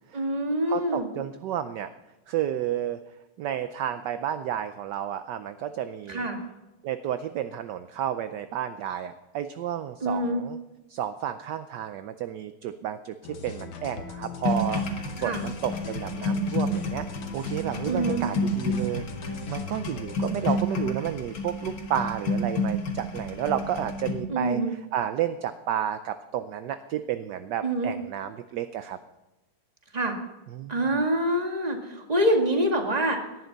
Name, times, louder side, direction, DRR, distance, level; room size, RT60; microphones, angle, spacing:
voice 1, 0.1-1.1 6.1-6.4 10.0-10.4 15.2-15.4 17.9-18.2 24.3-24.7 27.6-27.9 29.9-30.2 30.7-33.2, right 1 dB, 20° right, 2 dB, 1.8 m, -25 dB
voice 2, 0.7-1.9 2.3-3.0 3.4-6.3 6.8-10.6 10.9-17.1 17.3-24.6 24.9-29.0 30.5-30.8, right 10 dB, 70° right, 10 dB, 1.1 m, -31 dB
sound 1, 13.2-20.6, left 5 dB, 80° left, 2.1 m, -39 dB
sound 2, 14.4-24.1, left 1 dB, 55° left, 2.4 m, -30 dB
18.5 x 11.0 x 4.0 m, 1.0 s
omnidirectional pair, 2.3 m